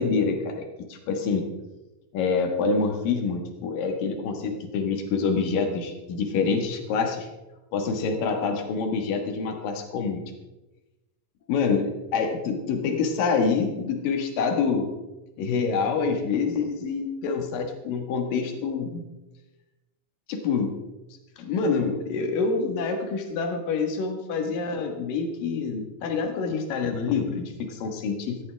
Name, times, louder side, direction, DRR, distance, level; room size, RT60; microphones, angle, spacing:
voice 1, 0.0-1.4 2.1-7.3 7.7-10.2 11.5-14.9 15.4-19.0 20.3-20.7 21.4-28.4, left 5 dB, 75° left, 4 dB, 3.3 m, -26 dB
18.0 x 13.5 x 3.5 m, 1.0 s
omnidirectional pair, 4.0 m